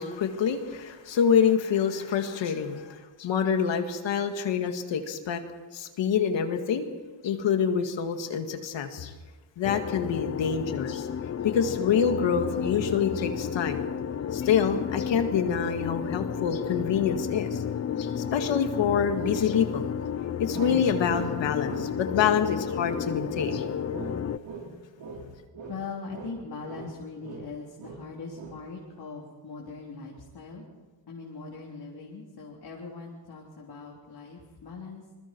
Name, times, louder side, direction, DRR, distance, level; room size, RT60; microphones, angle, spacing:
voice 1, 0.0-5.4 5.7-6.9 7.2-9.1 9.6-11.1 11.4-13.8 14.3-17.6 18.0-19.8 20.4-23.7, left 7 dB, 85° left, 6 dB, 2.1 m, -26 dB
sound 1, 9.6-24.4, left 8 dB, 35° left, 0.6 m, -32 dB
sound 2, 20.5-21.9 22.2-23.1 23.3-25.3 25.5-27.5 27.8-28.1 28.3-28.6, right 4 dB, 80° right, 4.4 m, -40 dB
voice 2, 25.7-30.6 31.1-35.0, left 4 dB, 60° left, -3 dB, 3.7 m, -41 dB
26.5 x 21.5 x 4.6 m, 1.4 s
cardioid pair, 100°, 43 cm